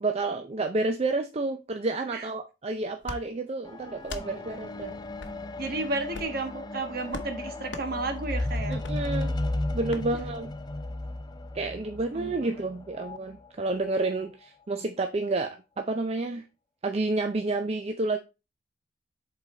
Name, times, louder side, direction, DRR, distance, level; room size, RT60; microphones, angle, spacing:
voice 1, 0.0-5.0 8.7-9.4 9.7-10.5 11.5-16.4 16.8-18.2, right 2 dB, 35° right, 0.5 m, -30 dB
sound 1, 3.0-3.2 4.0-4.3 5.2-5.4 6.1-6.4 7.1-7.3 7.7-7.9 8.8-9.0 9.9-10.0, left 3 dB, 80° left, 0.9 m, -38 dB
sound 2, 3.7-13.2 14.0-14.1, left 1 dB, 25° left, 0.5 m, -34 dB
voice 2, 5.6-8.8 12.1-12.5, right 2 dB, 55° right, 1.3 m, -33 dB
7.6 x 3.9 x 4.2 m
head